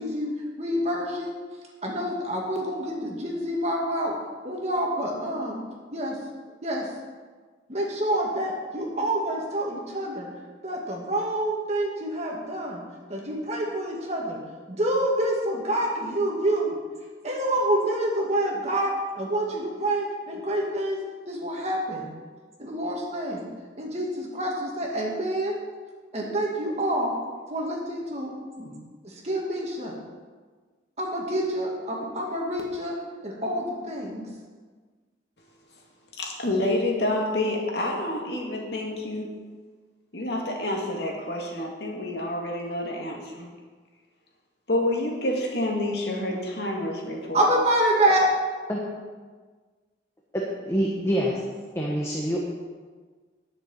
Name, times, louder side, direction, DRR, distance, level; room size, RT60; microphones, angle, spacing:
voice 1, 0.0-1.4 1.8-4.1 4.4-5.6 5.9-6.2 6.6-6.9 7.7-10.3 10.6-12.8 13.1-14.4 14.7-16.7 17.2-21.0 21.3-22.1 22.6-23.5 23.8-25.6 26.1-27.1 27.5-28.8 29.0-29.9 31.0-32.9 33.2-34.3 47.3-48.3, right 1 dB, 35° right, -2 dB, 2.2 m, -27 dB
voice 2, 36.2-39.3 40.1-43.5 44.7-47.5, left 1 dB, 65° left, -1 dB, 2.2 m, -28 dB
voice 3, 50.3-51.4 51.7-52.4, equal, 15° left, -3 dB, 1.2 m, -26 dB
11.0 x 6.9 x 7.1 m, 1.4 s
head